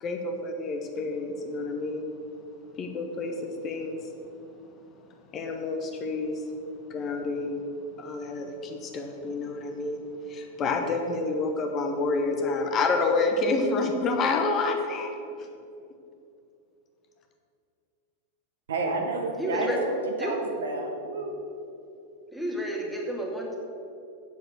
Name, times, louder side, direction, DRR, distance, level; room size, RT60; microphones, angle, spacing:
voice 1, 0.0-2.1 2.8-4.0 5.3-6.4 6.9-7.6 8.0-10.0 10.3-15.1, left 3 dB, 30° left, 3 dB, 1.1 m, -28 dB
voice 2, 18.7-21.3, right 3 dB, 65° right, 2 dB, 1.5 m, -30 dB
voice 3, 19.4-19.8 20.2-20.4 22.3-23.6, right 1 dB, ahead, -1 dB, 1.9 m, -31 dB
8.0 x 7.3 x 7.5 m, 2.6 s
figure-of-eight pair, 90°, 0 cm